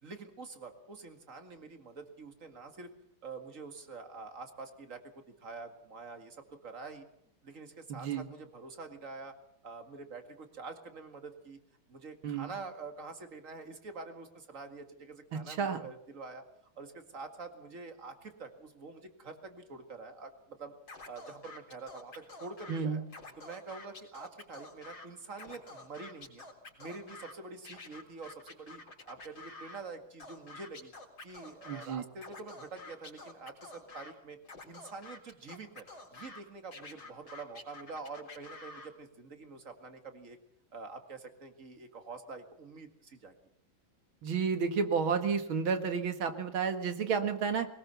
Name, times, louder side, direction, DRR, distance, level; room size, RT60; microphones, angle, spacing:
voice 1, 0.0-2.9 3.2-7.1 7.4-9.3 9.6-11.6 11.9-16.4 16.8-20.7 21.1-23.0 23.4-26.4 26.8-30.9 31.2-34.4 34.7-35.9 36.1-40.4 40.7-43.3, right 4 dB, 40° right, 7 dB, 2.3 m, -46 dB
voice 2, 7.9-8.3 12.2-12.5 15.3-15.8 22.7-23.0 31.7-32.0 44.2-47.7, right 6 dB, 85° right, 8 dB, 2.5 m, -31 dB
Scratching (performance technique), 20.9-22.8 23.1-25.1 25.3-27.3 27.7-29.8 30.2-31.9 32.2-34.1 34.5-36.4 36.7-38.9, left 3 dB, 60° left, 4.4 m, -49 dB
21.5 x 19.5 x 7.0 m, 0.71 s
omnidirectional pair, 2.2 m